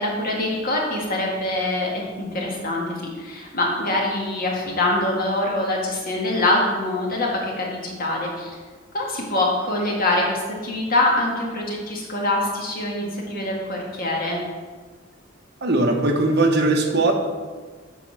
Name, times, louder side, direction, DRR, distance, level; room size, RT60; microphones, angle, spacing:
voice 1, 0.0-8.6 8.9-14.4, left 1 dB, 45° left, -1 dB, 1.6 m, -24 dB
voice 2, 15.6-17.1, right 2 dB, 55° right, 3 dB, 1.1 m, -19 dB
8.3 x 4.2 x 6.1 m, 1.5 s
head